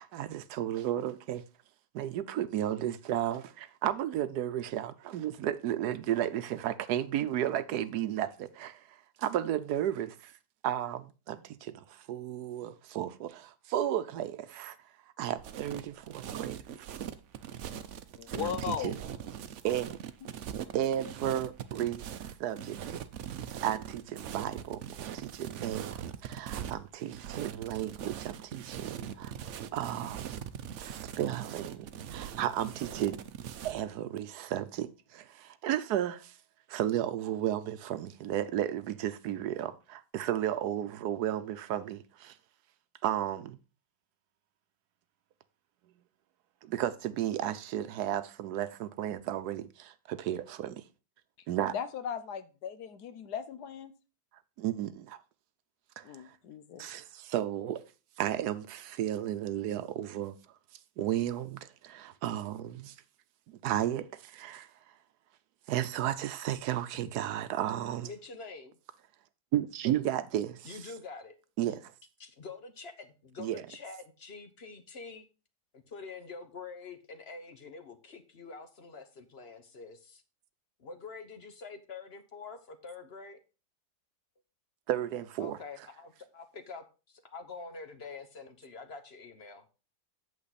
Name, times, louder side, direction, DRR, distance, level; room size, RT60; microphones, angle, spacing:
voice 1, 0.0-1.4 1.9-10.3 10.6-14.8 15.2-16.9 18.3-18.6 18.8-19.0 19.6-20.0 20.7-23.0 23.6-29.3 29.7-30.4 30.8-33.2 33.6-36.3 36.7-42.3 43.0-43.6 46.6-50.8 51.5-51.7 54.6-55.2 56.0-56.4 56.8-57.8 58.2-60.3 61.0-62.9 63.5-64.7 65.7-68.1 69.5-70.8 71.6-71.9 73.4-73.6 84.9-85.6, right 11 dB, 80° right, 1.2 m, -33 dB
sound 1, 15.4-33.8, right 9 dB, 60° right, 0.8 m, -41 dB
voice 2, 18.1-18.9 51.7-53.9 56.0-56.8, left 8 dB, 80° left, 1.3 m, -37 dB
voice 3, 68.0-68.8 70.6-71.4 72.2-75.3 75.7-80.2 80.8-83.4 85.4-89.7, left 4 dB, 45° left, 1.1 m, -46 dB
8.6 x 7.1 x 4.1 m
omnidirectional pair, 1.7 m